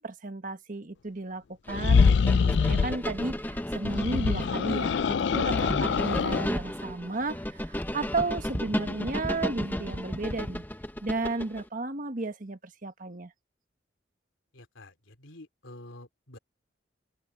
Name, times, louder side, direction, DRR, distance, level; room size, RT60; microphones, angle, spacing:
voice 1, 0.0-10.6 11.0-13.3, right 3 dB, 45° right, 1.3 m, -33 dB
sound 1, 1.7-3.0 3.8-6.5, left 5 dB, 65° left, 0.4 m, -24 dB
sound 2, 1.7-11.6, equal, 10° left, 1.2 m, -34 dB
voice 2, 14.5-16.4, left 1 dB, 85° left, 3.2 m, -48 dB
open air
head